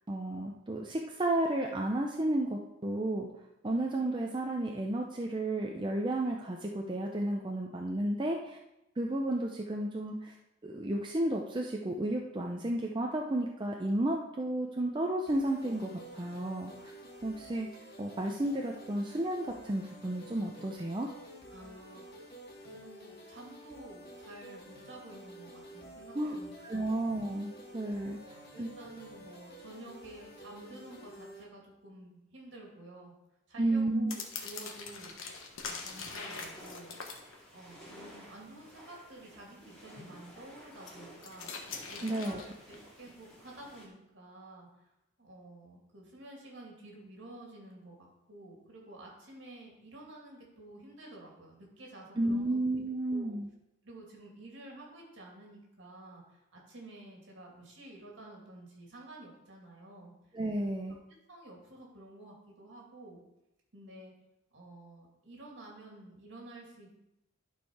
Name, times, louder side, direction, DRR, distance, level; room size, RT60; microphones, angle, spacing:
voice 1, 0.1-3.3 3.6-8.6 9.0-10.3 10.6-16.9 17.2-17.7 18.0-21.1 26.1-26.4 26.6-28.7 33.6-34.1 42.0-42.4 52.2-53.5 60.3-61.0, right 1 dB, 25° right, 0 dB, 0.5 m, -32 dB
sound 1, 15.3-31.4, equal, 50° left, 1.8 m, -51 dB
voice 2, 21.5-22.1 22.7-26.9 27.5-27.6 28.1-33.1 33.5-35.1 35.6-36.9 37.5-41.5 41.9-44.7 45.2-52.6 53.1-53.4 53.8-60.1 60.5-60.6 61.3-63.2 63.7-64.1 64.5-67.0, right 1 dB, 60° right, -2 dB, 2.7 m, -51 dB
sound 2, 34.1-37.9 40.6-43.1 43.4-43.8, left 5 dB, 85° left, 1.2 m, -43 dB
sound 3, 35.4-43.9, equal, 5° left, 2.6 m, -54 dB
11.5 x 4.5 x 4.7 m, 0.89 s
head